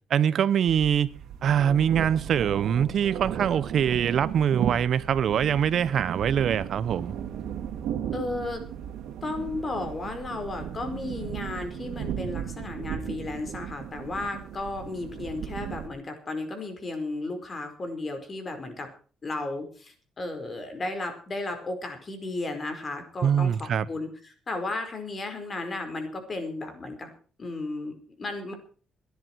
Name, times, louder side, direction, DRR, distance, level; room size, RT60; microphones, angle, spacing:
voice 1, 0.1-1.1 1.4-7.2 23.2-23.9, right 8 dB, 65° right, 0.9 m, -23 dB
sound 1, 0.7-15.9, right 9 dB, 80° right, 2.3 m, -36 dB
voice 2, 8.1-8.6 9.2-18.9 19.2-27.1 27.4-28.5, left 2 dB, 35° left, 4.8 m, -34 dB
21.5 x 10.5 x 4.7 m
cardioid pair, 90°, 0 cm